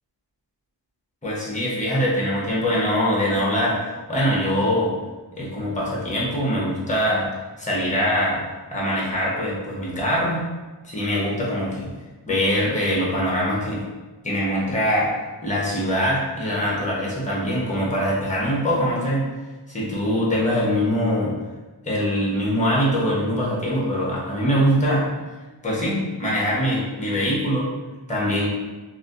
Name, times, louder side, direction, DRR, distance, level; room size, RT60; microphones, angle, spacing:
voice 1, 1.2-3.8 4.1-4.9 5.4-7.3 7.6-8.4 8.7-10.4 10.8-11.9 12.3-13.8 14.2-15.1 15.4-19.3 19.7-21.3 21.8-25.1 25.6-27.6 28.1-28.5, equal, 15° left, -5 dB, 1.1 m, -23 dB
3.2 x 2.7 x 2.6 m, 1.2 s
wide cardioid pair, 85°, 44 cm